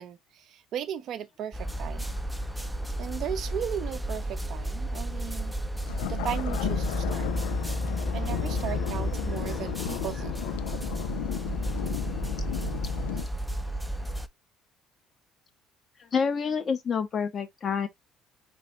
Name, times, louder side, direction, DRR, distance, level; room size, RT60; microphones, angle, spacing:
voice 1, 0.0-2.1 3.0-5.6 6.1-7.3 8.1-10.4, right 9 dB, 60° right, 0.5 m, -36 dB
sound 1, 1.5-14.3, equal, 5° right, 0.5 m, -32 dB
sound 2, 5.8-13.3, left 13 dB, 85° left, 0.3 m, -34 dB
voice 2, 16.0-17.9, left 6 dB, 45° left, 0.9 m, -28 dB
4.1 x 3.2 x 2.9 m
hypercardioid pair, 65°, 0 cm